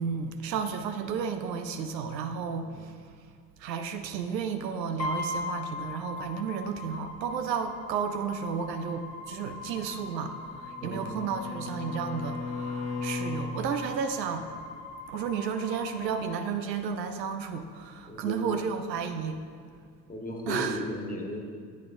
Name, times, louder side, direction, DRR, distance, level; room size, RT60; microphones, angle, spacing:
voice 1, 0.0-3.2 3.6-14.5 15.1-19.4 20.5-20.8, right 6 dB, 80° right, 7 dB, 0.6 m, -32 dB
sound 1, 5.0-17.0, left 3 dB, 90° left, 1.7 m, -40 dB
Bowed string instrument, 10.2-13.6, left 4 dB, 50° left, 1.4 m, -36 dB
voice 2, 18.1-18.6 20.1-21.4, equal, 15° left, 0 dB, 1.5 m, -35 dB
9.2 x 8.3 x 2.6 m, 2.1 s
figure-of-eight pair, 60°, 50 cm